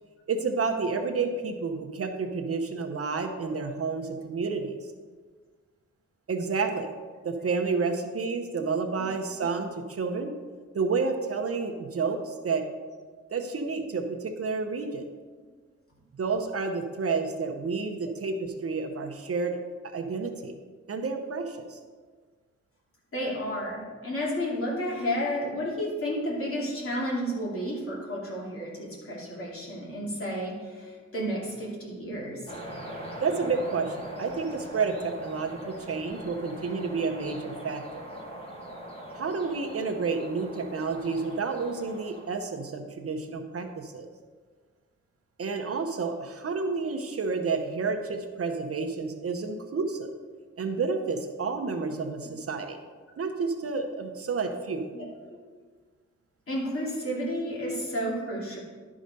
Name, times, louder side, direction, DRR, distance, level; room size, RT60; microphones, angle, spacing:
voice 1, 0.3-4.8 6.3-6.9 7.2-10.3 10.7-12.7 13.3-15.1 16.2-19.6 19.8-20.5 20.9-21.8 33.2-38.1 39.1-44.1 45.4-50.1 50.6-52.8 53.2-54.9, right 4 dB, 50° right, 5 dB, 0.8 m, -30 dB
voice 2, 23.1-32.5 35.6-35.8 54.9-55.4 56.5-58.6, equal, 45° left, -5 dB, 2.8 m, -32 dB
sound 1, 32.5-42.3, equal, 20° left, 1.4 m, -41 dB
11.5 x 4.9 x 5.3 m, 1.5 s
wide cardioid pair, 145°, 29 cm